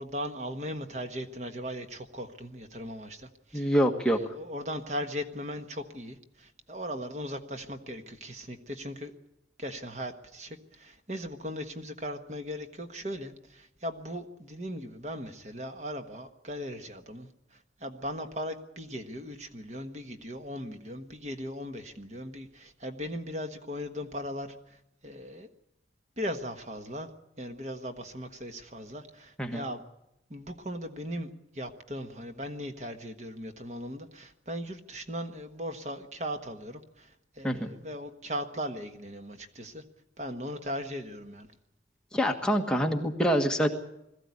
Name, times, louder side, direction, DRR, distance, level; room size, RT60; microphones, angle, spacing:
voice 1, 0.0-9.1 9.6-25.5 26.2-27.1 27.4-29.8 30.3-39.8 40.2-41.5, equal, 40° right, 6 dB, 1.4 m, -38 dB
voice 2, 3.5-4.2 29.4-29.6 37.4-37.7 42.1-43.7, equal, 5° left, 2 dB, 1.4 m, -26 dB
21.5 x 14.5 x 9.6 m, 0.85 s
head